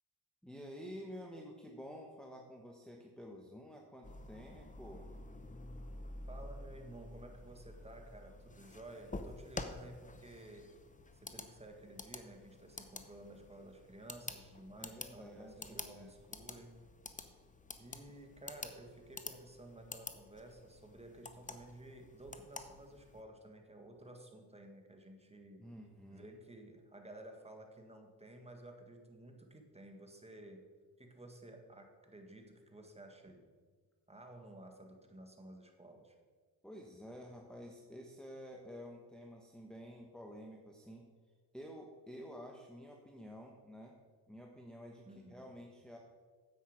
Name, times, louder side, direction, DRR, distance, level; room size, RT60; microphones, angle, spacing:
voice 1, 0.4-5.1 14.8-16.1 25.6-26.4 36.6-41.1 41.5-43.9 44.3-46.0, equal, ahead, 0 dB, 1.1 m, -50 dB
sound 1, 4.0-23.2, left 2 dB, 20° left, 0.8 m, -49 dB
voice 2, 6.3-10.7 11.1-16.8 17.8-25.7 26.1-30.7 31.0-33.5 34.1-36.2 45.0-45.5, right 1 dB, 15° right, 3 dB, 1.7 m, -54 dB
10.5 x 7.9 x 5.0 m, 1.5 s
cardioid pair, 85°, 41 cm